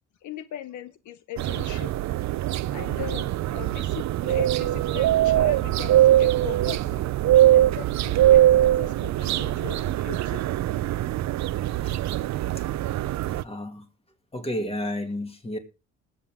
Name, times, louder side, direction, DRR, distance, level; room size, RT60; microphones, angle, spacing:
voice 1, 0.2-1.9 2.7-7.0 7.5-10.4, left 11 dB, 75° left, 0.7 m, -39 dB
sound 1, 1.4-13.4, right 13 dB, 65° right, 0.5 m, -22 dB
voice 2, 13.3-13.9 14.3-15.6, left 1 dB, 20° left, 2.3 m, -32 dB
20.5 x 7.6 x 3.6 m
cardioid pair, 90°, 30 cm